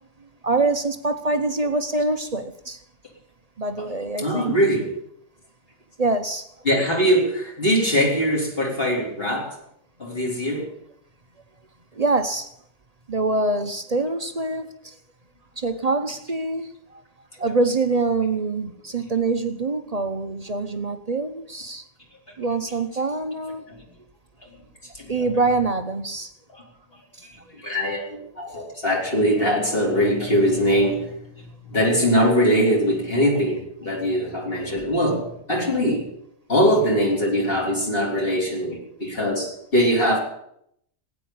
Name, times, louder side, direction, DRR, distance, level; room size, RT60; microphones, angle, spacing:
voice 1, 0.4-2.8 3.6-4.5 6.0-6.5 11.9-12.5 13.1-14.9 15.6-17.0 17.4-21.8 22.4-23.6 25.1-26.3 27.2-27.3, right 3 dB, 35° right, 9 dB, 0.6 m, -25 dB
voice 2, 4.2-4.9 6.6-9.6 10.0-10.7 23.7-23.9 24.4-24.6 24.9-25.3 26.5-26.6 27.2-36.1 36.5-40.2, equal, 35° left, -1 dB, 3.8 m, -22 dB
16.0 x 9.3 x 8.7 m, 0.74 s
omnidirectional pair, 1.7 m